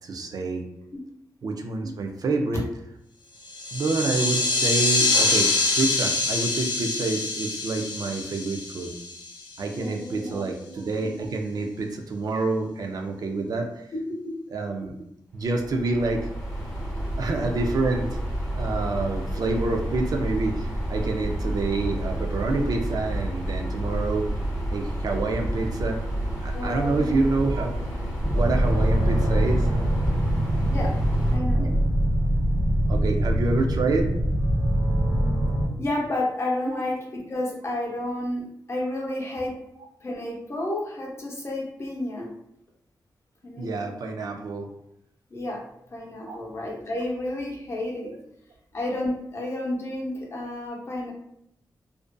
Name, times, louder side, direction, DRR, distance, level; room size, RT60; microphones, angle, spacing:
voice 1, 0.0-0.6 1.4-2.7 3.7-8.9 9.6-13.9 14.5-14.9 15.3-16.3 17.2-18.2 18.6-24.3 24.7-26.0 26.4-29.7 31.6-31.7 32.9-34.1 36.6-36.8 43.6-44.7 46.3-46.4 48.0-48.1, right 3 dB, 60° right, 3 dB, 0.3 m, -27 dB
sound 1, 3.5-9.5, left 2 dB, 85° left, 0.5 m, -25 dB
voice 2, 9.8-10.5 14.2-14.4 26.5-27.3 30.7-30.9 31.3-31.8 35.8-38.4 38.7-39.5 40.0-42.3 43.4-43.9 45.3-45.6 45.9-48.1 48.7-51.1, left 1 dB, 35° left, -2 dB, 0.6 m, -31 dB
sound 2, 15.4-31.4, right 1 dB, 10° left, 0.9 m, -30 dB
sound 3, 28.2-35.6, right 1 dB, 40° right, 1.1 m, -23 dB
2.5 x 2.4 x 2.2 m, 0.78 s
wide cardioid pair, 140°, 7 cm